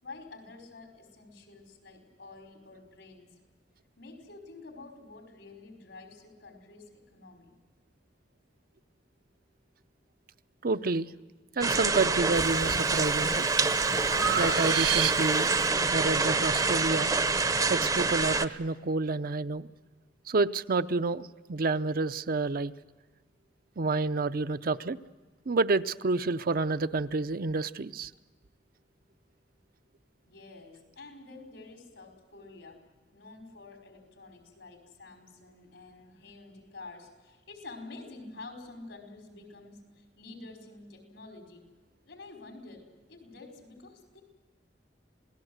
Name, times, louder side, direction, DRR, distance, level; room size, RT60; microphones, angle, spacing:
voice 1, 0.0-3.3 4.0-7.5 30.3-32.8 33.1-41.6 42.0-44.2, left 3 dB, 80° left, 3 dB, 5.1 m, -49 dB
voice 2, 10.6-11.1 11.6-13.5 14.3-15.5 15.9-17.1 17.7-19.7 20.3-22.7 23.8-25.0 25.5-28.1, right 3 dB, 55° right, 11 dB, 0.6 m, -29 dB
sound 1, 11.6-18.5, right 4 dB, 20° right, 0.7 m, -26 dB
Breathing, 12.3-12.8 13.3-15.5, right 7 dB, 70° right, 1.5 m, -31 dB
27.5 x 18.0 x 8.0 m, 1.3 s
head